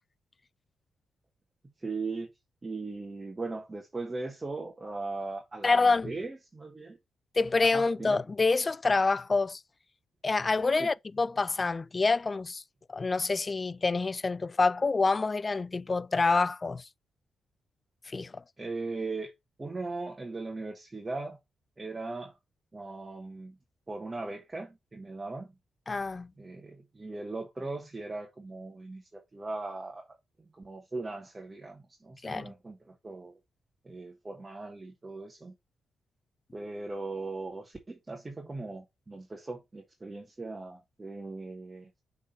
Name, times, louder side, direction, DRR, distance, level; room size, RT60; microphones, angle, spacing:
voice 1, 1.8-2.3 2.6-7.0 7.7-8.2 10.8-10.9 18.6-19.3 19.6-21.4 21.8-22.3 22.7-23.5 23.9-25.5 26.4-30.1 30.5-32.8 33.0-33.3 33.8-35.5 36.5-41.9, right 3 dB, 30° right, 1.4 m, -38 dB
voice 2, 5.6-6.1 7.3-9.6 10.2-12.6 12.9-16.9 18.1-18.4 25.9-26.3 32.2-32.5, left 3 dB, 35° left, 0.3 m, -27 dB
6.6 x 3.7 x 4.3 m
supercardioid pair, 60°, 0 cm